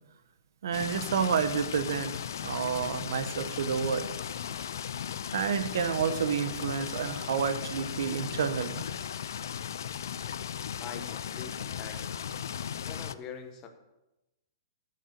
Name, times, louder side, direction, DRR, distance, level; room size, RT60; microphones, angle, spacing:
voice 1, 0.6-2.1 2.4-4.0 5.3-8.8, right 7 dB, 60° right, 11 dB, 0.9 m, -29 dB
sound 1, 0.7-13.1, left 8 dB, 60° left, 0.4 m, -37 dB
voice 2, 10.8-12.2 12.9-13.7, left 7 dB, 15° left, 4 dB, 1.0 m, -43 dB
9.9 x 6.7 x 6.5 m, 0.97 s
hypercardioid pair, 180°, 2 cm